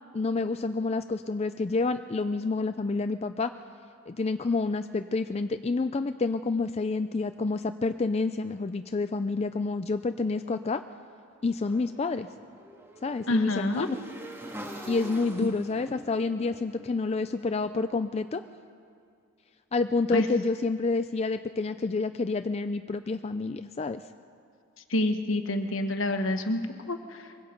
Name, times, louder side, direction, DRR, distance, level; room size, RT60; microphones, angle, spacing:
voice 1, 0.1-3.5 4.1-10.8 11.4-12.3 13.0-13.9 14.9-18.4 19.7-24.0, left 3 dB, 30° left, 9 dB, 0.4 m, -28 dB
Motorcycle / Engine, 11.6-17.7, right 1 dB, 10° right, 2.0 m, -45 dB
voice 2, 13.3-13.9 15.4-15.5 20.1-20.3 24.9-27.3, left 1 dB, 65° left, 7 dB, 1.3 m, -28 dB
24.0 x 22.5 x 5.2 m, 2.4 s
head